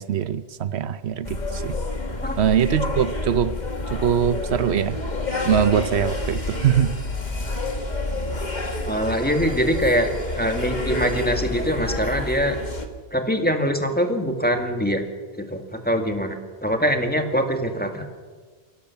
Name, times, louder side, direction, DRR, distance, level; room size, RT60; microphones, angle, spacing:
voice 1, 0.0-1.8 2.4-3.6 3.9-5.0 5.4-6.9, right 9 dB, 85° right, 1.0 m, -22 dB
sound 1, 1.2-12.9, left 2 dB, 45° left, 1.8 m, -28 dB
voice 2, 8.9-12.6 13.1-15.0 15.3-18.1, equal, 10° left, 1.9 m, -23 dB
23.0 x 17.5 x 7.1 m
omnidirectional pair, 1.1 m